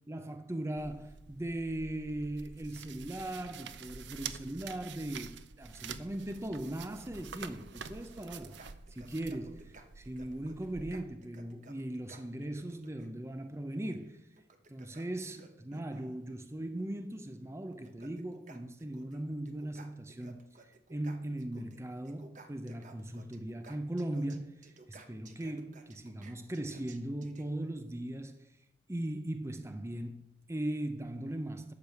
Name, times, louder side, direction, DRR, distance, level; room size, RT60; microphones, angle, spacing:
voice 1, 0.1-8.6 8.9-14.2 14.7-28.5 28.9-31.7, right 1 dB, 15° right, 0.5 m, -39 dB
sound 1, 0.8-10.9, right 6 dB, 65° right, 0.6 m, -47 dB
sound 2, 8.3-13.1 14.4-16.2 17.2-17.3 17.7-19.2 19.5-21.8 22.0-27.4, right 3 dB, 40° right, 1.0 m, -56 dB
12.0 x 4.8 x 8.2 m
head